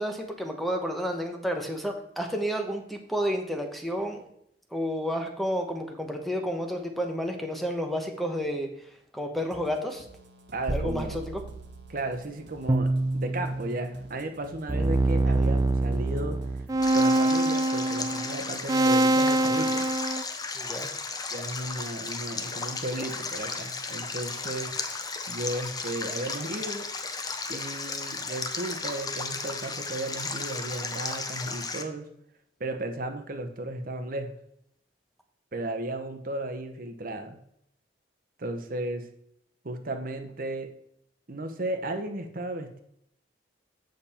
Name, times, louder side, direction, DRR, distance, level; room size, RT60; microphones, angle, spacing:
voice 1, 0.0-4.2 4.7-10.1 10.7-11.4 15.3-15.5 20.5-20.9, equal, ahead, 3 dB, 1.0 m, -31 dB
sound 1, 9.5-16.9, right 2 dB, 75° right, 1.1 m, -52 dB
voice 2, 10.5-11.2 11.9-12.9 13.1-16.4 16.9-19.9 21.3-24.7 25.3-26.8 27.5-32.1 32.6-34.4 35.5-37.4 38.4-39.1 39.6-40.7 41.3-42.8, right 1 dB, 50° right, 6 dB, 0.9 m, -34 dB
sound 2, 10.7-12.0 12.7-14.1 14.7-20.2, right 2 dB, 20° right, 0.4 m, -25 dB
Stream, 16.8-31.8, left 4 dB, 20° left, 0.7 m, -35 dB
7.8 x 6.9 x 4.3 m, 0.72 s
head